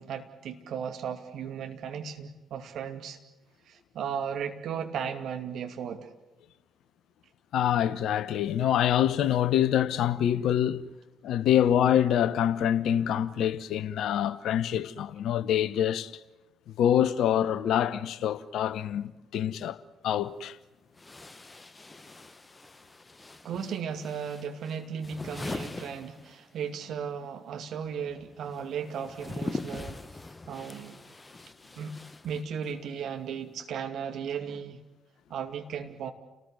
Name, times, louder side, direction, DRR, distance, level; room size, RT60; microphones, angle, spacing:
voice 1, 0.0-3.2 3.7-6.1 23.4-30.0 30.5-31.0 31.8-32.0 32.2-34.8 35.3-36.1, right 7 dB, 60° right, 2.5 m, -36 dB
voice 2, 7.5-10.9 11.2-16.1 16.8-19.8 20.0-20.6, left 10 dB, 60° left, 0.9 m, -25 dB
sound 1, 20.0-20.1 20.9-26.8 27.0-32.9, left 2 dB, 25° left, 1.1 m, -42 dB
30.0 x 19.5 x 7.8 m
figure-of-eight pair, 45°, 0 cm